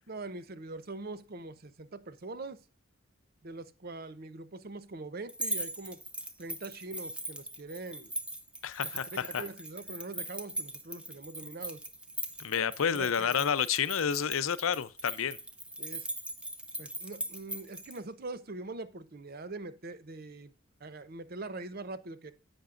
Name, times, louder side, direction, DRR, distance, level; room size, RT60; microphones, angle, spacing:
voice 1, 0.1-2.6 3.4-6.0 6.4-8.1 9.1-11.8 12.9-13.4 15.8-16.1 16.8-20.5 20.8-22.3, right 3 dB, 45° right, 0.7 m, -43 dB
sound 1, 5.3-18.0, right 1 dB, 5° right, 0.8 m, -40 dB
voice 2, 8.6-9.4 12.4-15.4, left 7 dB, 85° left, 0.6 m, -30 dB
10.5 x 8.1 x 2.5 m
head